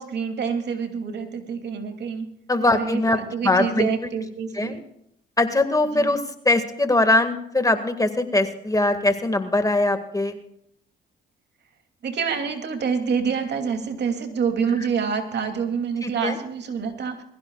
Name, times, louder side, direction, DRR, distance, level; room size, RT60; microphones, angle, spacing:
voice 1, 0.0-2.3 2.7-4.8 5.9-6.1 12.0-17.2, right 6 dB, 60° right, 5 dB, 2.7 m, -27 dB
voice 2, 2.5-3.2 3.4-3.9 4.5-4.8 5.4-6.2 6.5-10.4 16.0-16.4, left 2 dB, 15° left, 7 dB, 1.9 m, -21 dB
22.5 x 15.5 x 2.4 m, 0.73 s
cardioid pair, 90°, 20 cm